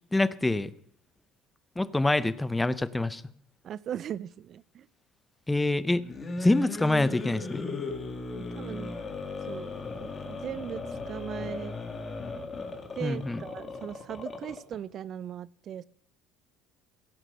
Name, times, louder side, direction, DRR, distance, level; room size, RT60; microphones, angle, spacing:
voice 1, 0.1-0.7 1.8-3.2 5.5-6.0 6.4-7.7 13.0-13.4, left 2 dB, 10° left, 16 dB, 0.6 m, -26 dB
voice 2, 3.6-4.9 8.4-9.0 9.5-9.7 10.0-11.8 13.0-15.8, right 9 dB, 45° right, 22 dB, 0.4 m, -38 dB
sound 1, 6.0-14.8, left 3 dB, 25° left, 1.9 m, -37 dB
16.0 x 5.9 x 6.6 m, 0.65 s
cardioid pair, 115°, 0 cm